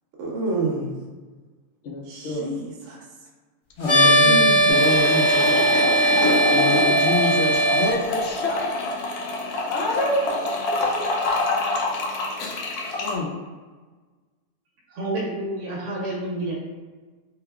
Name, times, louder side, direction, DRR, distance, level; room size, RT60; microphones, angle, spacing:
voice 1, 0.2-0.9 2.1-3.0 4.2-4.9, right 2 dB, 65° right, -2 dB, 0.8 m, -28 dB
voice 2, 1.8-2.5 3.8-5.8 6.5-9.0 9.7-10.8 11.3-11.7 13.0-13.3, left 3 dB, 65° left, 0 dB, 0.7 m, -28 dB
sound 1, 3.8-7.9, right 1 dB, 30° left, 0.5 m, -18 dB
sound 2, 4.7-13.1, left 2 dB, 85° left, 1.1 m, -26 dB
voice 3, 14.9-16.6, right 1 dB, 85° right, -2 dB, 1.1 m, -29 dB
3.2 x 3.2 x 2.2 m, 1.4 s
omnidirectional pair, 1.6 m